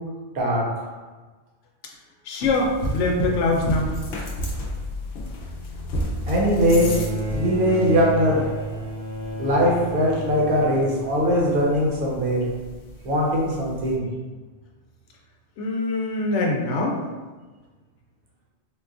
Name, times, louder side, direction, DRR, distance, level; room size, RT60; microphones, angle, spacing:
voice 1, 0.3-0.8 6.3-6.9 7.3-8.7 9.4-12.5 13.0-14.1, equal, 55° right, -3 dB, 0.9 m, -21 dB
voice 2, 2.3-3.9 15.6-17.0, left 2 dB, 90° left, 0 dB, 0.9 m, -23 dB
sound 1, 2.4-14.0, left 1 dB, 60° left, 0.7 m, -33 dB
Bowed string instrument, 6.5-12.0 13.1-13.2, right 2 dB, 80° right, 1.0 m, -32 dB
4.0 x 2.2 x 2.4 m, 1.3 s
omnidirectional pair, 1.2 m